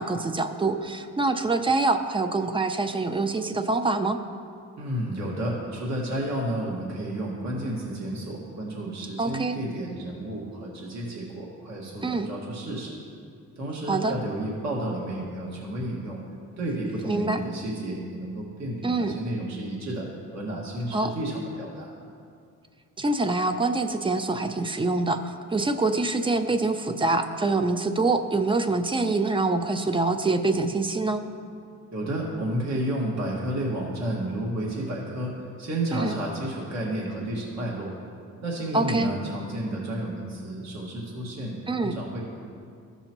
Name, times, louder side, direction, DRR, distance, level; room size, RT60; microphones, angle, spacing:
voice 1, 0.0-4.2 9.2-9.6 12.0-12.3 13.9-14.1 17.0-17.4 18.8-19.2 20.9-21.1 23.0-31.2 35.9-36.1 38.7-39.1 41.7-42.0, right 3 dB, 15° right, 8 dB, 0.5 m, -25 dB
voice 2, 4.8-13.0 13.6-16.2 16.6-22.0 31.9-37.9 38.4-42.2, right 1 dB, 65° right, -3 dB, 1.8 m, -31 dB
14.0 x 5.5 x 3.0 m, 2.3 s
cardioid pair, 90°, 30 cm